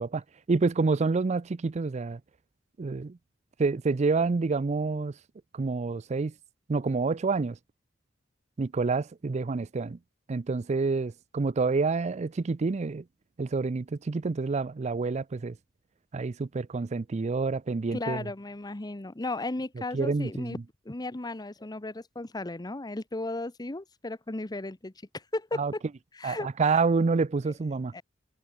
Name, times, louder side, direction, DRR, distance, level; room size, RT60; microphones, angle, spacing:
voice 1, 0.0-2.2 2.8-3.2 3.6-5.1 5.5-6.3 6.7-7.6 8.6-10.0 10.3-13.0 13.4-15.6 16.1-18.3 19.9-20.6 25.6-25.7 26.2-27.9, right 4 dB, 35° right, 0.4 m, -28 dB
voice 2, 17.9-20.6 20.9-24.9 25.3-25.8 26.2-26.8 27.9-28.0, left 2 dB, 20° left, 0.8 m, -35 dB
head